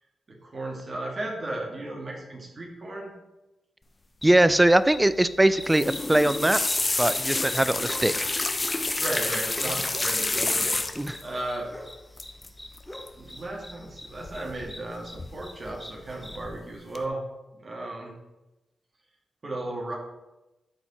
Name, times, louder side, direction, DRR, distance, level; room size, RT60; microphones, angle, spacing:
voice 1, 0.3-3.1 7.3-8.2 9.0-10.7 11.2-11.7 13.2-17.2 17.6-18.1 19.4-20.0, right 2 dB, 45° right, -1 dB, 2.1 m, -35 dB
sound 1, 4.2-16.4, left 1 dB, 10° left, 1.2 m, -44 dB
voice 2, 4.2-6.6 7.0-8.1 11.0-11.2, right 1 dB, 15° right, 15 dB, 0.5 m, -21 dB
sound 2, 5.6-11.2 12.2-12.5 12.7-13.1 14.3-14.8 15.2-15.7 16.2-16.6 17.0-17.1, left 2 dB, 30° left, 0.9 m, -28 dB
13.0 x 4.4 x 4.3 m, 1.0 s
cardioid pair, 65°, 0 cm